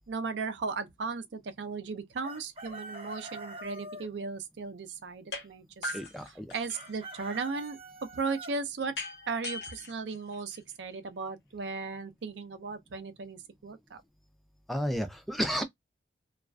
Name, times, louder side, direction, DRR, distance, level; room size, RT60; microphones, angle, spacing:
voice 1, 0.1-7.8 8.1-9.0 9.3-14.0, right 4 dB, 80° right, 0.5 m, -36 dB
Chicken rooster, 2.2-4.1 6.7-8.5, right 1 dB, 35° right, 0.7 m, -44 dB
sound 1, 5.3-5.5 5.8-7.0 9.0-10.9, left 2 dB, 70° left, 0.7 m, -40 dB
voice 2, 5.9-6.5 14.7-15.6, equal, ahead, 0.3 m, -32 dB
2.4 x 2.3 x 2.3 m
head